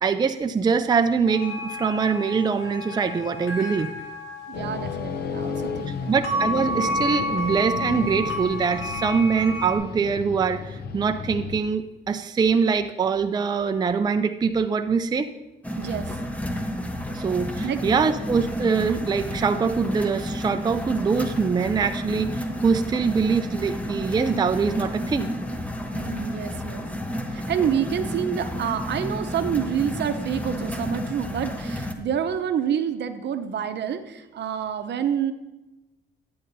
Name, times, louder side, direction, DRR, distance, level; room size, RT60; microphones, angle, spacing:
voice 1, 0.0-3.9 5.9-15.3 17.1-25.3, right 5 dB, 20° right, 8 dB, 0.4 m, -23 dB
sound 1, 1.2-9.8, left 1 dB, 85° left, 2.1 m, -31 dB
sound 2, 4.5-11.6, left 5 dB, 55° left, 0.7 m, -33 dB
voice 2, 4.5-6.1 15.8-16.2 17.6-17.8 25.9-26.9 27.3-35.3, right 8 dB, 60° right, 9 dB, 0.7 m, -28 dB
sound 3, 15.6-31.9, equal, 5° left, 0.9 m, -31 dB
11.0 x 8.6 x 2.7 m, 1.0 s
cardioid pair, 90°, 20 cm